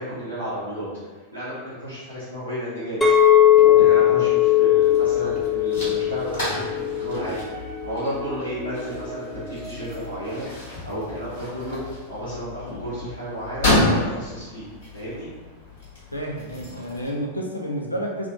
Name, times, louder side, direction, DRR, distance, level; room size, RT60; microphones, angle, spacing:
voice 1, 0.0-3.1 3.4-11.8 12.1-14.6 14.9-15.3, equal, 85° right, -13 dB, 0.9 m, -33 dB
Chink clink, 3.0-7.3 7.8-8.2, left 11 dB, 5° left, 0.4 m, -18 dB
sound 1, 3.6-10.4, right 4 dB, 30° right, 0.8 m, -38 dB
sound 2, 4.8-17.1, left 1 dB, 60° left, 1.3 m, -30 dB
voice 2, 16.1-18.3, equal, 85° left, -1 dB, 0.5 m, -30 dB
3.4 x 2.3 x 2.6 m, 1.3 s
figure-of-eight pair, 90°, 0 cm